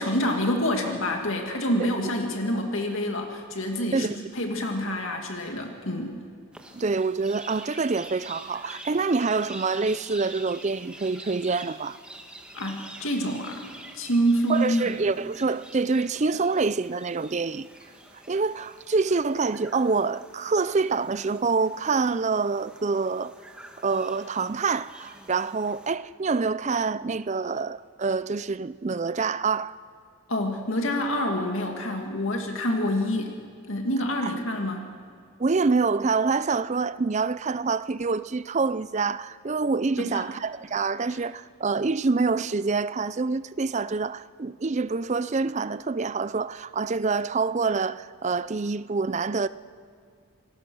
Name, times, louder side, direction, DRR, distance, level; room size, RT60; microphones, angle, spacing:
voice 1, 0.0-6.2 12.5-13.6 13.9-14.8 30.3-33.3 33.7-34.9 40.0-40.3 41.1-41.2, equal, 65° left, 2.3 m, -27 dB
sound 1, 6.5-25.9, right 1 dB, 5° right, 1.6 m, -47 dB
voice 2, 6.7-12.0 14.5-17.7 18.3-23.3 23.8-29.8 34.2-34.3 35.4-49.5, right 4 dB, 30° right, 0.4 m, -26 dB
27.0 x 19.0 x 6.3 m
head